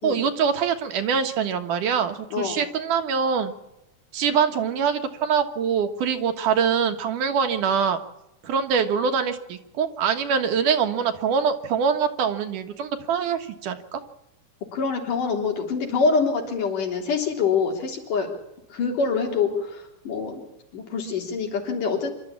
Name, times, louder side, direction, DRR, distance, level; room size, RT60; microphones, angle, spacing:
voice 1, 0.0-3.5 4.1-8.0 8.4-14.0, right 6 dB, 80° right, 7 dB, 3.0 m, -24 dB
voice 2, 14.7-18.3 18.7-20.4 20.7-22.1, left 5 dB, 90° left, 2 dB, 5.2 m, -25 dB
26.0 x 12.5 x 8.7 m, 0.88 s
omnidirectional pair, 3.6 m